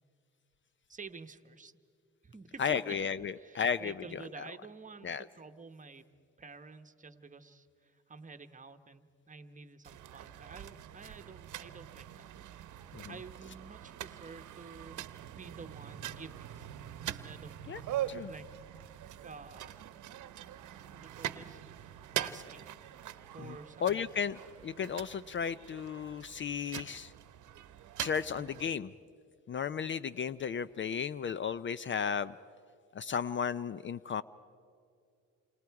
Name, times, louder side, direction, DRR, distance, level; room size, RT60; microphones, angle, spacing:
voice 1, 0.9-1.8 2.2-3.0 3.4-6.1 6.4-12.3 12.7-15.1 15.4-16.5 17.0-17.6 18.3-18.5 19.2-19.8 20.8-21.6 22.0-22.7 23.3-23.9, right 4 dB, 25° right, 9 dB, 1.1 m, -50 dB
voice 2, 2.6-4.2 5.0-5.2 12.9-13.1 17.7-17.8 18.1-18.3 23.4-23.5 23.8-27.1 28.0-28.9 29.5-32.3 32.9-34.2, left 7 dB, 40° left, 16 dB, 0.5 m, -34 dB
sound 1, 9.8-28.7, right 12 dB, 75° right, 0.9 m, -43 dB
28.5 x 27.5 x 4.7 m, 2.4 s
cardioid pair, 90°, 30 cm